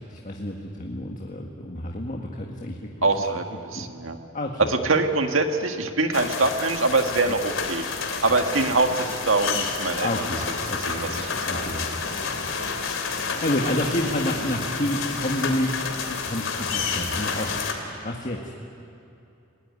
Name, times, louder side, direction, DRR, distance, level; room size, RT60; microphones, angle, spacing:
voice 1, 0.0-3.3 3.7-3.9 4.3-4.7 7.3-7.4 8.3-8.4 10.0-12.4 13.1-15.8 16.1-18.4, left 1 dB, 40° left, 1 dB, 1.7 m, -30 dB
voice 2, 3.0-4.2 4.6-7.9 8.2-10.1 10.9-11.6, right 3 dB, 75° right, 5 dB, 1.9 m, -24 dB
sound 1, 6.1-17.7, left 5 dB, 75° left, 3.2 m, -30 dB
29.5 x 19.0 x 9.8 m, 2.7 s
head